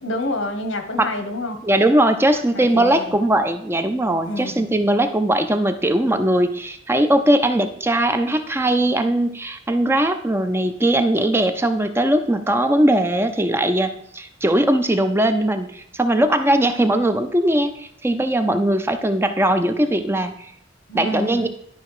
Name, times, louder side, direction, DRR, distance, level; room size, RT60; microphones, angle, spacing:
voice 1, 0.0-1.6 2.5-3.1 4.3-4.7 20.9-21.5, left 1 dB, 85° left, 7 dB, 1.3 m, -28 dB
voice 2, 1.6-20.5 20.9-21.5, right 1 dB, 10° right, 8 dB, 0.5 m, -19 dB
11.0 x 5.3 x 4.9 m, 0.67 s
head